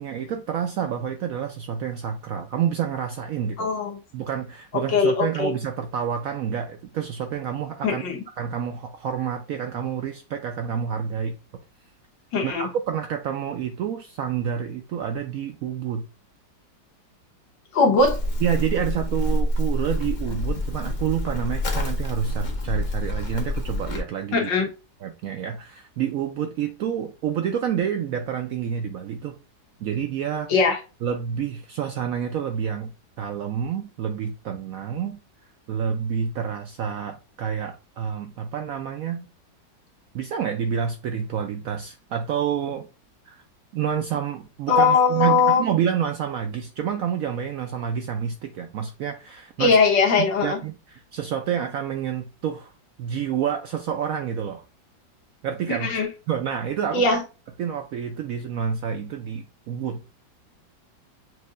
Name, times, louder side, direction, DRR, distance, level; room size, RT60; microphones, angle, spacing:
voice 1, 0.0-3.7 4.1-8.0 8.4-11.3 12.4-16.0 18.4-24.5 25.0-29.4 29.8-30.5 31.0-32.9 33.2-35.2 35.7-39.3 40.1-42.9 43.3-43.4 43.7-49.8 50.2-52.7 53.0-54.6 55.4-55.9 56.3-57.0 57.6-60.0, right 8 dB, 75° right, 0.8 m, -28 dB
voice 2, 3.6-4.0 4.9-5.5 7.8-8.2 12.3-12.7 17.7-18.2 24.3-24.7 30.5-30.8 44.7-45.7 49.6-50.6 55.7-56.1 56.9-57.2, left 4 dB, 90° left, 1.8 m, -20 dB
Livestock farm animals working animals, 18.0-24.0, left 1 dB, 50° left, 0.5 m, -27 dB
7.4 x 2.7 x 2.4 m
omnidirectional pair, 1.9 m